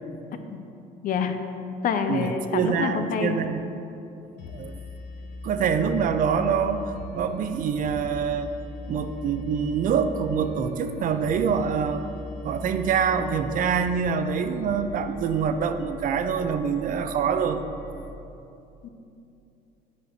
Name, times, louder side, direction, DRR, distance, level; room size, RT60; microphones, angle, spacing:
voice 1, 1.0-1.4 1.8-3.4 18.8-18.9, left 6 dB, 55° left, 7 dB, 0.7 m, -27 dB
voice 2, 2.1-3.7 4.5-4.8 5.4-6.8 7.1-8.5 8.9-12.1 12.4-17.6, right 6 dB, 55° right, 9 dB, 0.5 m, -25 dB
sound 1, 4.4-18.1, left 1 dB, 90° left, 0.9 m, -40 dB
8.1 x 4.5 x 6.6 m, 2.8 s
cardioid pair, 110°, 17 cm